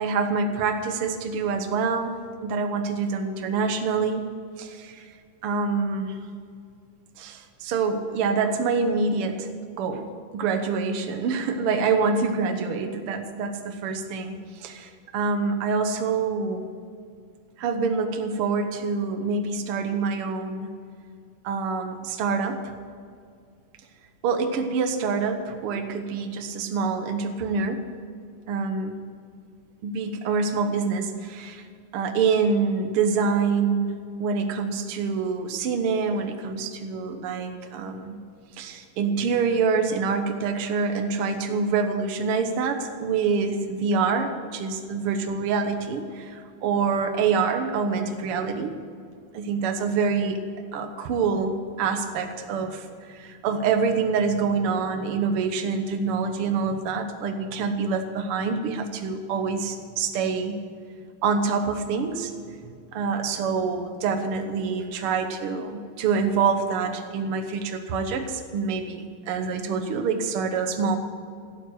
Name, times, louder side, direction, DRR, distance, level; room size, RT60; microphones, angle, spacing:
voice 1, 0.0-4.3 4.6-5.1 5.4-6.2 7.2-9.5 9.8-16.6 17.6-20.7 21.4-22.6 24.2-27.9 28.5-28.9 29.8-31.6 31.9-38.2 38.6-48.8 49.3-50.4 50.7-60.5 61.2-62.3 62.9-71.0, right 5 dB, 70° right, 7 dB, 1.3 m, -26 dB
16.5 x 9.3 x 7.9 m, 2.2 s
omnidirectional pair, 4.0 m